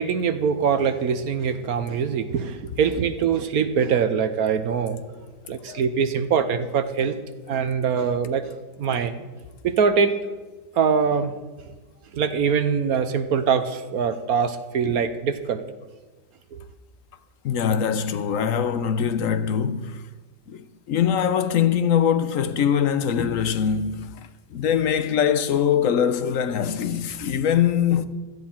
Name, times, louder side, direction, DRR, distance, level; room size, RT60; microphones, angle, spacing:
voice 1, 0.0-5.0 5.5-7.2 7.5-8.5 8.8-9.3 9.6-10.1 10.7-11.3 12.1-15.6 16.5-16.6, right 6 dB, 65° right, 1.2 m, -23 dB
voice 2, 17.4-20.0 20.5-24.1 24.5-28.1, left 8 dB, 60° left, 1.0 m, -22 dB
17.0 x 13.5 x 4.4 m
omnidirectional pair, 1.8 m